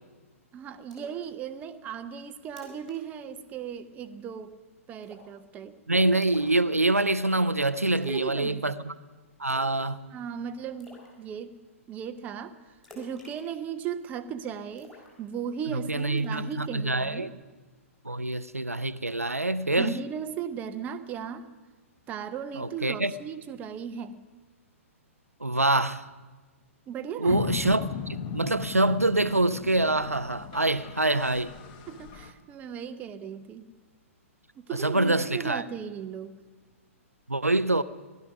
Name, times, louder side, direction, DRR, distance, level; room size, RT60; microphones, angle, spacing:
voice 1, 0.5-4.5 4.9-5.8 7.9-8.7 10.1-11.5 11.9-12.6 12.9-17.3 19.7-21.5 22.1-24.2 26.9-27.5 31.9-33.7 34.6-36.4, right 8 dB, 20° right, 0.7 m, -37 dB
Splash splatter, 0.9-1.2 1.6-1.7 2.1-2.2 2.5-3.0 3.2-3.4 3.7-4.1 5.0-5.4 6.2-7.1 8.0-8.3 8.6-9.0 9.5-9.9 10.2-10.3 10.8-11.1 12.8-14.1 14.8-15.7 16.2-16.4, left 3 dB, 5° left, 4.0 m, -50 dB
voice 2, 5.9-8.9 9.4-10.0 15.9-17.3 18.0-20.0 22.6-23.1 25.4-26.1 27.2-31.5 34.8-35.6 37.3-37.8, right 2 dB, 90° right, 0.5 m, -25 dB
sound 1, 27.3-32.3, left 7 dB, 35° left, 1.1 m, -37 dB
17.5 x 12.0 x 5.9 m
figure-of-eight pair, 115°, 8 cm